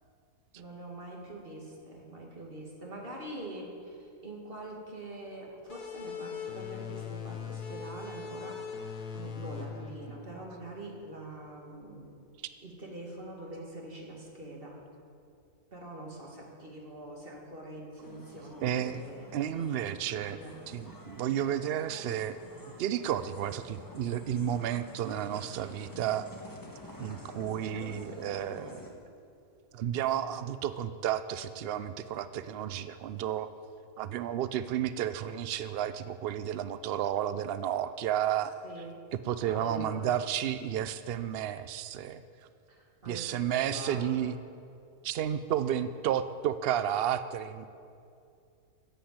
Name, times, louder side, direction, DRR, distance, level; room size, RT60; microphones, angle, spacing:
voice 1, 0.5-12.2 12.6-14.8 15.7-19.3 20.2-20.6 27.7-28.0 38.6-39.0 39.4-40.1 42.7-44.1, right 1 dB, 35° right, -1 dB, 2.4 m, -44 dB
sound 1, 5.7-11.0, left 7 dB, 85° left, 1.7 m, -41 dB
sound 2, 18.0-28.9, left 1 dB, 15° left, 1.3 m, -49 dB
voice 2, 18.6-19.0 19.3-20.4 20.7-22.4 22.8-26.3 27.0-28.9 29.7-33.5 34.0-38.5 39.1-42.2 43.0-44.4 45.0-47.7, right 10 dB, 85° right, 12 dB, 0.5 m, -32 dB
13.5 x 7.9 x 8.6 m, 2.5 s
omnidirectional pair, 1.6 m